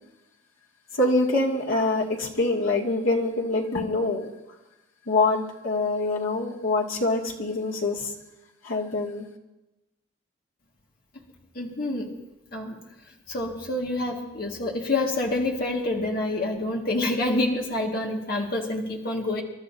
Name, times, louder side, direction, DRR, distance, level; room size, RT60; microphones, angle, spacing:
voice 1, 0.9-4.3 5.1-8.1 8.6-9.2, left 2 dB, 90° left, -2 dB, 2.2 m, -25 dB
voice 2, 11.5-12.1 12.5-12.8 13.3-19.4, left 2 dB, 45° left, 0 dB, 1.9 m, -27 dB
27.5 x 12.5 x 2.8 m, 1.0 s
head